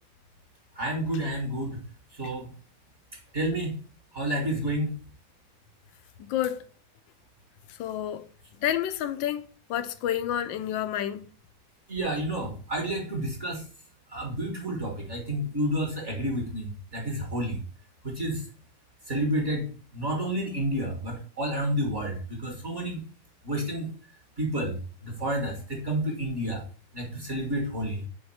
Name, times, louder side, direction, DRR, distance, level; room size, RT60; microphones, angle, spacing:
voice 1, 0.8-1.8 2.2-2.5 3.3-3.7 4.1-4.9 11.9-13.6 14.1-16.7 16.9-17.6 18.0-18.4 19.1-19.7 19.9-23.0 23.4-23.9 24.4-26.6 26.9-28.1, right 1 dB, 35° right, 1.7 m, -30 dB
voice 2, 6.3-6.6 7.8-8.3 8.6-11.3, left 11 dB, 75° left, 1.2 m, -29 dB
8.7 x 3.5 x 4.8 m
omnidirectional pair, 2.3 m